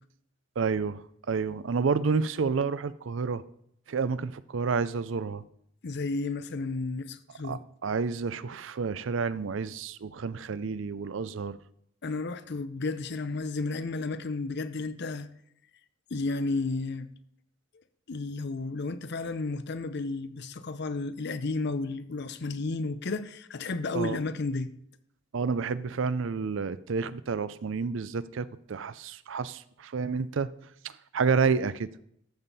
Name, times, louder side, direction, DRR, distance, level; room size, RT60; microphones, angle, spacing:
voice 1, 0.6-3.4 3.9-5.4 7.4-11.6 23.9-24.2 25.3-30.5 30.8-31.9, right 5 dB, 65° right, 0.5 m, -30 dB
voice 2, 5.8-7.6 12.0-15.3 16.1-17.1 18.1-24.7, left 3 dB, 55° left, 0.7 m, -32 dB
13.0 x 7.2 x 4.1 m
head